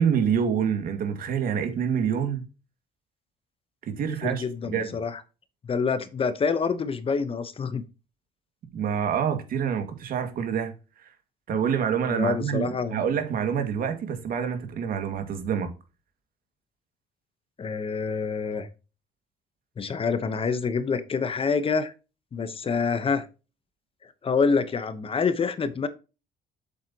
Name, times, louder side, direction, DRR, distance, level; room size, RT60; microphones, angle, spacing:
voice 1, 0.0-2.4 3.8-4.9 8.7-10.7 11.0-11.1 11.5-15.7, right 7 dB, 60° right, 2.1 m, -27 dB
voice 2, 4.2-5.2 5.6-7.8 12.1-13.0 17.6-18.7 19.8-21.9 22.3-23.3 24.2-25.9, left 5 dB, 35° left, 1.0 m, -27 dB
8.1 x 7.5 x 2.9 m
cardioid pair, 110°, 17 cm